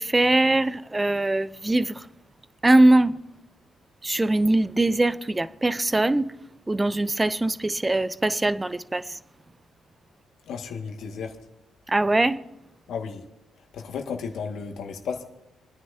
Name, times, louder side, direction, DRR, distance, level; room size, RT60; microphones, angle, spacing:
voice 1, 0.0-2.0 2.6-3.2 4.0-6.3 6.7-9.2 11.9-12.4, right 2 dB, 15° right, 0.5 m, -22 dB
voice 2, 10.5-11.4 12.9-13.2 13.7-15.2, left 6 dB, 75° left, 1.9 m, -33 dB
29.5 x 10.0 x 2.8 m
cardioid pair, 90°, 0 cm